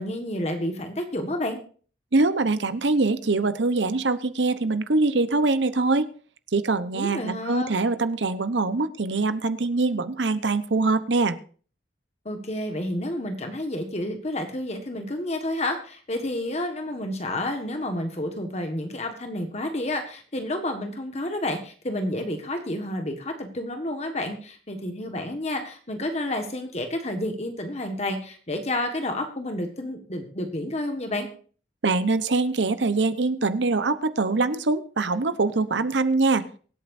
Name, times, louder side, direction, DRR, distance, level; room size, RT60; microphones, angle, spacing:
voice 1, 0.0-1.6 6.9-7.8 12.2-31.3, left 1 dB, 35° left, 5 dB, 1.5 m, -30 dB
voice 2, 2.1-6.1 6.5-11.4 31.8-36.4, right 3 dB, 80° right, 12 dB, 0.9 m, -23 dB
23.5 x 8.7 x 2.6 m, 0.41 s
head